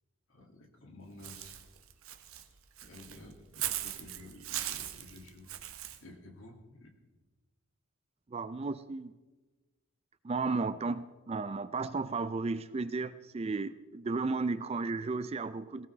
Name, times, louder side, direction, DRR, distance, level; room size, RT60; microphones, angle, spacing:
voice 1, 0.3-1.6 2.8-5.5 6.0-6.9, left 2 dB, 65° left, 2 dB, 2.3 m, -52 dB
Walk footsteps / Bird, 1.2-6.0, right 12 dB, 70° right, 0.9 m, -39 dB
voice 2, 8.3-9.1 10.2-15.9, right 3 dB, 30° right, 14 dB, 0.3 m, -34 dB
18.0 x 16.5 x 3.3 m, 1.2 s
head